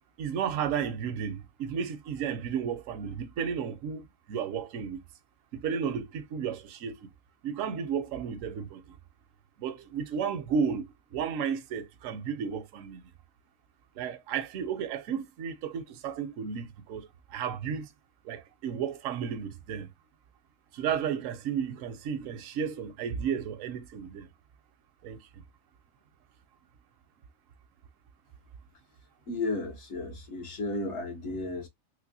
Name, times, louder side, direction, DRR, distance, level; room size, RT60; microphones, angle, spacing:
voice 1, 0.2-5.0 5.5-7.0 7.4-9.0 9.6-10.9 11.1-13.1 14.0-17.9 18.2-19.9 20.7-24.3 25.0-25.2, right 7 dB, 75° right, 1.0 m, -33 dB
voice 2, 29.3-31.7, left 2 dB, 60° left, 1.1 m, -33 dB
3.3 x 3.2 x 2.6 m
omnidirectional pair, 1.4 m